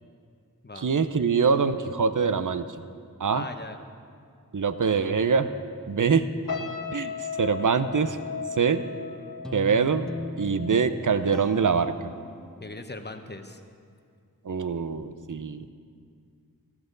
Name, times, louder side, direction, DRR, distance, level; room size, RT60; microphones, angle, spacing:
voice 1, 0.8-2.7 3.2-3.4 4.5-5.5 5.9-6.3 6.9-7.1 7.4-8.2 8.6-8.8 9.5-10.1 10.4-11.9 14.4-15.7, right 5 dB, 60° right, 11 dB, 0.7 m, -24 dB
voice 2, 3.3-3.8 12.6-13.6, left 2 dB, 30° left, 6 dB, 1.0 m, -39 dB
sound 1, 6.5-11.8 12.1-12.4, left 6 dB, 60° left, 1.4 m, -37 dB
Guitar, 9.4-12.7, left 1 dB, ahead, 0.5 m, -38 dB
14.5 x 13.5 x 3.9 m, 2.2 s
wide cardioid pair, 45°, 36 cm